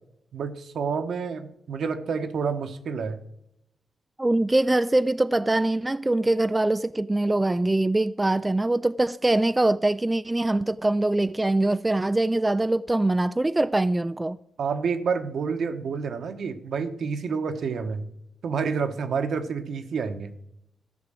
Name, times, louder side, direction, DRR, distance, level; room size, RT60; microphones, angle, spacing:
voice 1, 0.3-3.2 14.6-18.1 18.4-20.3, right 5 dB, 75° right, 1.1 m, -29 dB
voice 2, 4.2-14.4, right 2 dB, 15° right, 0.3 m, -23 dB
13.5 x 5.1 x 7.6 m
cardioid pair, 85°, 0 cm